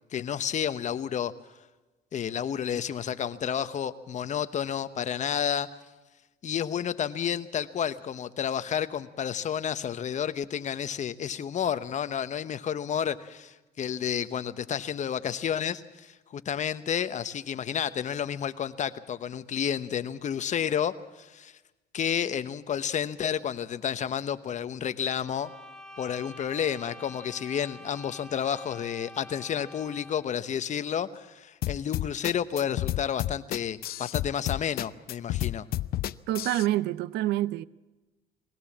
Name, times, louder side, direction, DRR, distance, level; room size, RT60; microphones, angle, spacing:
voice 1, 0.1-1.3 2.1-5.7 6.4-21.5 21.9-25.5 26.0-35.7, left 8 dB, 45° left, 1.0 m, -31 dB
sound 1, 25.1-30.4, left 1 dB, 5° left, 1.3 m, -47 dB
sound 2, 31.6-36.7, left 14 dB, 65° left, 0.6 m, -31 dB
voice 2, 36.3-37.6, right 15 dB, 85° right, 0.7 m, -27 dB
21.0 x 17.0 x 7.4 m
cardioid pair, 110°, 17 cm